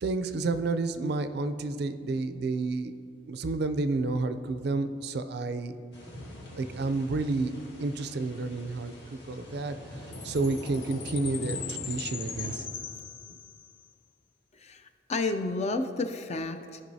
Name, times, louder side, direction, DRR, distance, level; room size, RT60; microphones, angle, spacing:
voice 1, 0.0-2.9 3.3-5.8 6.6-7.5 7.8-9.8 10.2-12.7, right 3 dB, 55° right, 10 dB, 0.4 m, -30 dB
sound 1, 5.9-12.6, equal, 60° left, 1.6 m, -43 dB
Chime, 10.1-13.8, left 8 dB, 85° left, 0.5 m, -40 dB
voice 2, 14.5-16.8, left 3 dB, 35° left, 8 dB, 0.4 m, -31 dB
15.0 x 5.4 x 2.7 m, 2.3 s
head